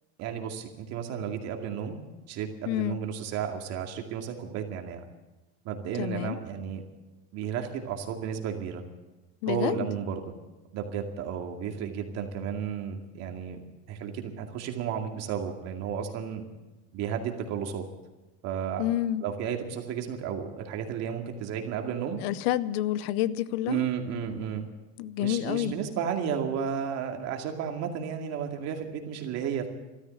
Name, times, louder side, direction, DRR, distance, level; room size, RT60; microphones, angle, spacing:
voice 1, 0.2-2.0 2.3-5.0 5.6-6.8 7.3-8.8 9.5-10.2 10.7-13.6 13.9-16.4 16.9-17.8 18.4-18.8 19.2-22.2 23.7-24.7 25.2-29.7, right 8 dB, 50° right, 4 dB, 2.3 m, -33 dB
voice 2, 2.7-3.0 6.0-6.4 9.4-9.8 18.8-19.2 22.2-23.8 25.0-25.7, left 13 dB, 65° left, 17 dB, 0.7 m, -28 dB
14.0 x 12.5 x 7.8 m, 1.1 s
supercardioid pair, 125°, 33 cm